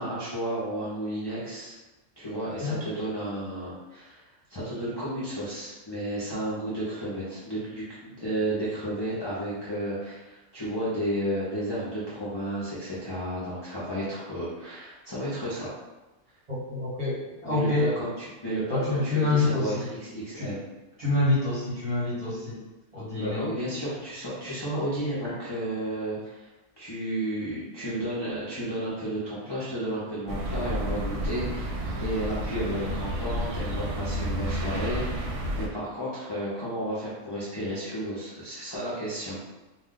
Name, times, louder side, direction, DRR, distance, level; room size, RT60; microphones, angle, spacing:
voice 1, 0.0-1.8 2.2-4.2 4.5-15.7 17.4-18.1 18.4-20.6 23.2-26.5 26.8-39.4, right 1 dB, 25° left, -11 dB, 0.6 m, -32 dB
voice 2, 16.5-17.9 18.7-19.8 20.3-20.5 21.0-22.6 22.9-23.4 25.2-25.3, left 2 dB, 30° right, -9 dB, 1.1 m, -27 dB
sound 1, 30.3-35.7, equal, 75° right, 0.9 m, -31 dB
2.3 x 2.3 x 3.7 m, 1.1 s
omnidirectional pair, 1.3 m